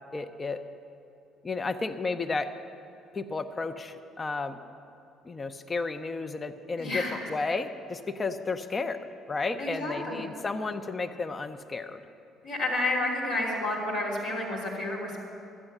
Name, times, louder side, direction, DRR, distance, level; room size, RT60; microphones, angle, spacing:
voice 1, 0.1-0.6 1.4-2.5 3.1-4.6 5.2-12.0, left 3 dB, 30° left, 8 dB, 0.7 m, -32 dB
voice 2, 6.8-7.1 9.6-10.2 12.4-15.2, left 2 dB, 65° left, -4 dB, 3.0 m, -30 dB
12.0 x 8.8 x 7.9 m, 2.7 s
figure-of-eight pair, 50°, 0 cm